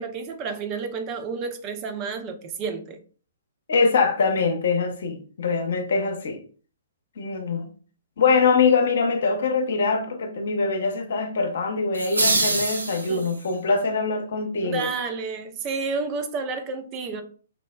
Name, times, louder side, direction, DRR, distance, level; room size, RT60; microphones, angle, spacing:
voice 1, 0.0-3.0 13.1-13.3 14.6-17.2, right 4 dB, 30° right, 0.5 m, -30 dB
voice 2, 3.7-6.4 7.2-7.7 8.2-14.9, left 4 dB, 60° left, 0.6 m, -23 dB
sound 1, 11.9-13.5, right 2 dB, 75° right, 0.6 m, -25 dB
4.1 x 2.0 x 2.2 m
figure-of-eight pair, 120°, 0 cm